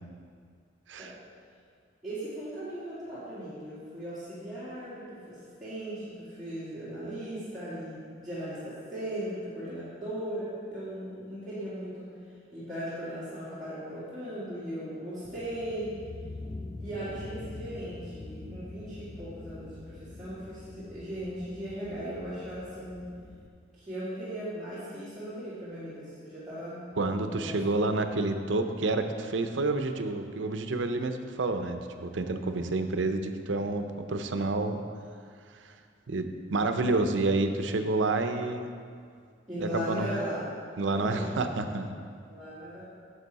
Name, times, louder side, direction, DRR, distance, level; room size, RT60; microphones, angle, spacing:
voice 1, 2.0-12.1 12.5-15.9 16.8-23.1 23.7-27.6 39.5-40.5 40.9-41.3 42.3-42.8, equal, ahead, -15 dB, 2.2 m, -38 dB
sound 1, 15.2-23.5, left 2 dB, 20° left, 0.4 m, -44 dB
voice 2, 27.0-34.8 35.6-35.7 36.1-38.7 39.6-40.1 40.8-41.9, right 2 dB, 80° right, 7 dB, 0.6 m, -29 dB
10.0 x 6.9 x 4.1 m, 2.1 s
head